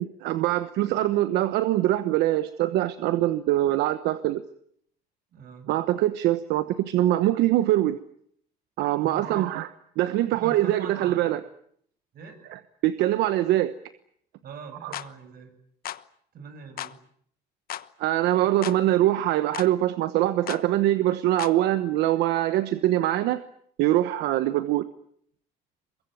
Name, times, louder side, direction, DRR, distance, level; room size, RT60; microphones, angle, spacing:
voice 1, 0.0-4.4 5.7-8.0 8.8-9.7 10.0-11.4 12.5-13.7 14.8-14.9 18.0-23.4 23.8-24.8, right 14 dB, 85° right, 12 dB, 1.1 m, -23 dB
voice 2, 5.3-5.7 9.0-9.4 10.3-11.4 12.1-12.4 14.4-15.5 16.3-17.0, right 4 dB, 60° right, 8 dB, 7.6 m, -42 dB
sound 1, 14.9-15.1 15.9-16.0 16.8-17.0 17.7-17.9 18.6-18.8 19.5-19.7 20.5-20.7 21.4-21.6, left 12 dB, 60° left, 1.1 m, -35 dB
23.0 x 22.5 x 9.2 m, 0.67 s
cardioid pair, 110°, 17 cm